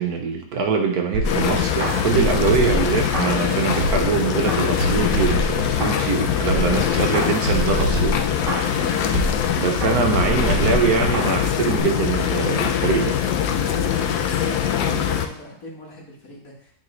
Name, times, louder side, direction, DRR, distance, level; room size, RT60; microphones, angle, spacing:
voice 1, 0.0-8.2 9.6-13.2, right 5 dB, 65° right, 3 dB, 1.2 m, -23 dB
sound 1, 1.1-4.1 4.5-6.2 6.5-9.5 9.8-11.5 11.8-11.9, right 1 dB, 45° right, 1.9 m, -26 dB
sound 2, 1.2-15.3, left 9 dB, 75° left, 1.1 m, -22 dB
voice 2, 14.2-16.7, left 1 dB, 55° left, -2 dB, 1.8 m, -40 dB
10.0 x 3.9 x 3.2 m, 0.64 s
omnidirectional pair, 1.8 m